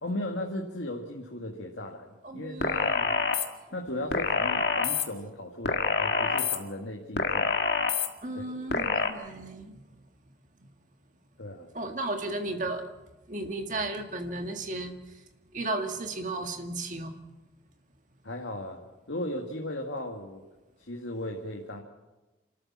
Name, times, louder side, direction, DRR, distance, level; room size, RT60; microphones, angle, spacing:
voice 1, 0.0-2.1 2.3-3.1 3.7-7.5 11.4-11.7 18.2-20.5 20.8-21.8, left 1 dB, 90° left, 1 dB, 1.9 m, -36 dB
voice 2, 2.2-3.2 3.6-3.7 8.2-9.8 11.7-12.9 13.3-15.0 15.5-17.2, right 2 dB, 40° right, 5 dB, 1.9 m, -34 dB
sound 1, 2.6-3.4 4.1-5.0 5.6-6.6 7.2-8.1 8.7-9.1, left 4 dB, 60° left, 1.8 m, -26 dB
27.5 x 13.0 x 7.4 m, 1.1 s
head